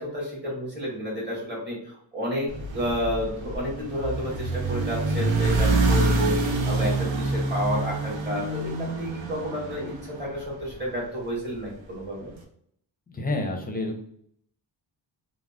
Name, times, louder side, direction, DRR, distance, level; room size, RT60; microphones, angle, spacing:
voice 1, 0.0-2.5 2.7-12.3, equal, 25° right, -5 dB, 1.4 m, -31 dB
sound 1, 2.5-10.8, right 2 dB, 85° right, 0.6 m, -26 dB
voice 2, 13.1-14.0, left 2 dB, 20° left, 2 dB, 0.5 m, -29 dB
3.5 x 2.1 x 2.3 m, 0.66 s
wide cardioid pair, 110°, 45 cm